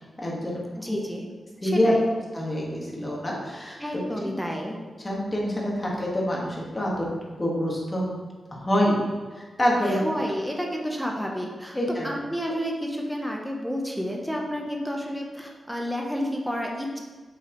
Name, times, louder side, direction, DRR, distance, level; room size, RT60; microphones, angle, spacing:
voice 1, 0.2-0.6 0.9-1.0 1.6-1.9 2.3-4.0 5.0-8.1 8.5-10.0 11.7-12.1, equal, 20° left, -4 dB, 1.7 m, -26 dB
voice 2, 0.8-1.3 1.6-2.1 3.8-4.8 9.8-17.0, equal, ahead, 0 dB, 0.9 m, -30 dB
7.6 x 5.7 x 3.1 m, 1.4 s
wide cardioid pair, 135°, 0 cm